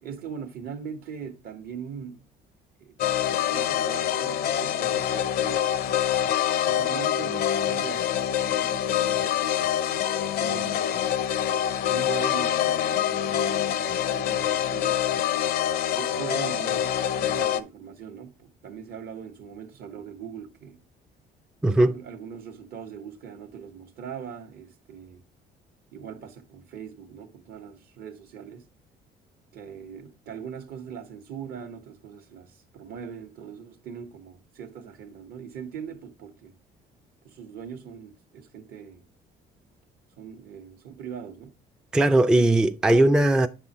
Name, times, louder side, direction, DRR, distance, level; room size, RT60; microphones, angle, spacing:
voice 1, 0.0-2.2 2.8-3.0 3.4-5.7 6.6-9.7 10.2-11.1 11.9-15.0 15.9-20.8 21.8-25.2 25.9-28.7 29.5-36.5 37.2-39.0 40.2-41.6 42.3-42.8, right 7 dB, 65° right, 1.1 m, -41 dB
sound 1, 3.0-17.6, left 10 dB, 65° left, 0.5 m, -25 dB
voice 2, 21.6-22.0 41.9-43.5, right 1 dB, 5° right, 0.3 m, -19 dB
8.0 x 5.5 x 2.9 m
cardioid pair, 110°, 17 cm